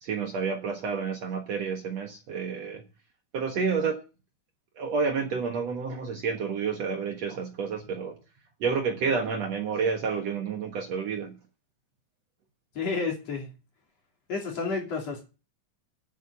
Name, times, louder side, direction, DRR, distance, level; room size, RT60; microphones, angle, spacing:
voice 1, 0.0-2.8 3.3-4.0 4.8-8.2 8.6-11.4, right 5 dB, 55° right, 2.1 m, -29 dB
voice 2, 12.8-13.5 14.3-15.3, left 4 dB, 45° left, 3.9 m, -30 dB
10.5 x 7.9 x 6.8 m
omnidirectional pair, 4.2 m